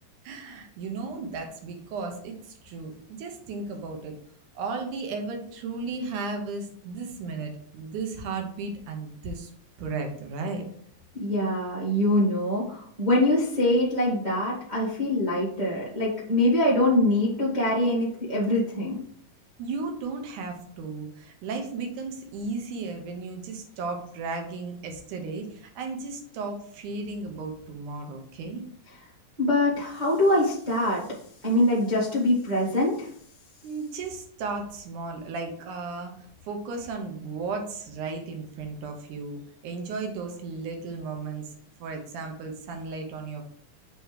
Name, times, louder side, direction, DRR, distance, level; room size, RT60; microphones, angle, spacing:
voice 1, 0.2-4.2 4.6-9.5 9.8-10.6 19.6-28.6 33.6-36.1 36.5-41.5 41.8-43.4, right 4 dB, 70° right, 4 dB, 2.3 m, -35 dB
voice 2, 11.2-19.0 29.4-31.0 31.4-33.1, left 1 dB, 45° right, -7 dB, 0.5 m, -24 dB
8.0 x 3.1 x 5.0 m, 0.63 s
omnidirectional pair, 4.0 m